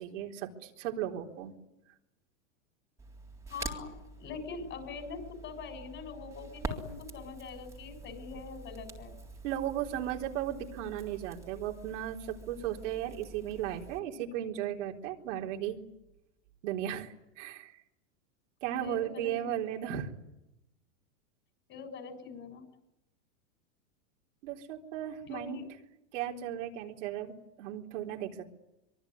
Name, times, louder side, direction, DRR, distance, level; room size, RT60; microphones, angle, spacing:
voice 1, 0.0-1.5 9.4-15.8 16.6-17.7 18.6-20.1 24.4-25.6 26.1-28.5, right 11 dB, 65° right, 1 dB, 4.0 m, -36 dB
Crackle, 3.0-14.0, right 3 dB, 10° right, 3.6 m, -46 dB
voice 2, 3.5-3.9 4.2-9.1 18.8-19.6 21.7-22.6 25.3-25.6, left 5 dB, 30° left, 7 dB, 7.7 m, -43 dB
24.5 x 23.0 x 9.6 m, 0.90 s
supercardioid pair, 135°, 39 cm